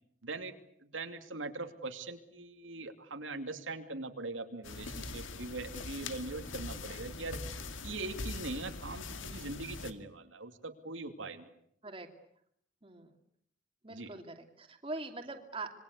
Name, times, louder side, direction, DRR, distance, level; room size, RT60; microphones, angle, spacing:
voice 1, 0.2-7.4 7.8-11.5 13.9-14.1, right 3 dB, 85° right, 6 dB, 2.7 m, -41 dB
sound 1, 4.6-9.9, left 3 dB, 85° left, 2.2 m, -42 dB
voice 2, 12.8-13.1 13.8-15.8, right 2 dB, 30° right, 4 dB, 2.8 m, -42 dB
26.5 x 23.0 x 8.4 m, 0.70 s
head